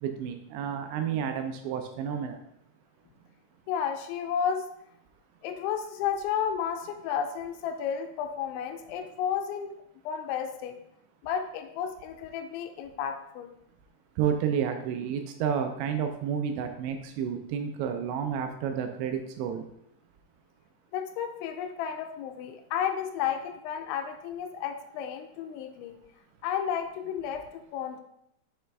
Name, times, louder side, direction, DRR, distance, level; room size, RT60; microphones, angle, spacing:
voice 1, 0.0-2.4 14.2-19.6, right 8 dB, 85° right, 6 dB, 2.7 m, -30 dB
voice 2, 3.7-4.7 5.4-9.7 10.1-10.7 11.2-13.5 20.9-26.0 26.4-28.0, left 8 dB, 85° left, 6 dB, 2.8 m, -32 dB
6.7 x 5.5 x 3.4 m, 0.77 s
omnidirectional pair, 5.4 m